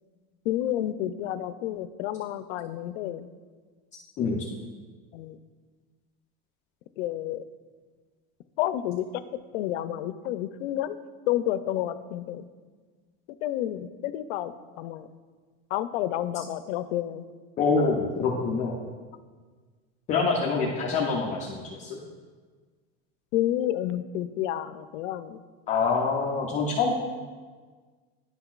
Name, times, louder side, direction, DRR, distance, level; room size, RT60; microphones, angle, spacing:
voice 1, 0.4-3.3 5.1-5.4 7.0-7.4 8.6-9.2 9.5-11.0 11.3-12.4 13.4-15.1 15.7-17.2 23.3-25.4, left 12 dB, 90° left, 12 dB, 0.5 m, -30 dB
voice 2, 17.6-18.8 20.1-22.0 25.7-26.9, left 4 dB, 25° left, -3 dB, 0.4 m, -25 dB
11.0 x 5.8 x 2.3 m, 1.5 s
supercardioid pair, 165°, 33 cm